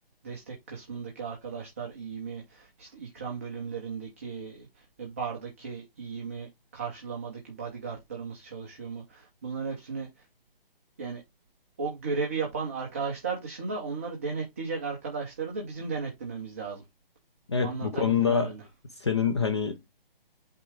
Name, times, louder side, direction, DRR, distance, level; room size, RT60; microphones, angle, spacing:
voice 1, 0.2-10.2 11.0-11.2 11.8-16.8 17.6-18.6, right 5 dB, 15° right, 0.7 m, -35 dB
voice 2, 17.5-18.5 19.0-19.9, left 6 dB, 30° left, 0.6 m, -26 dB
8.4 x 3.7 x 3.4 m
hypercardioid pair, 170°, 29 cm